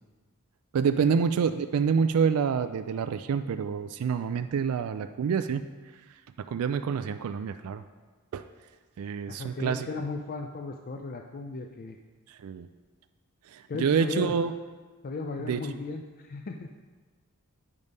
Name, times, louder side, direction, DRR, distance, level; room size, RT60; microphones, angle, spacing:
voice 1, 0.7-5.6 6.5-7.8 8.3-8.4 9.0-9.9 12.3-12.7 13.5-14.5 15.5-15.6, right 6 dB, 70° right, 9 dB, 0.3 m, -27 dB
voice 2, 9.3-12.0 13.7-14.4 15.0-16.7, left 3 dB, 40° left, 4 dB, 0.4 m, -36 dB
9.6 x 5.3 x 5.3 m, 1.4 s
head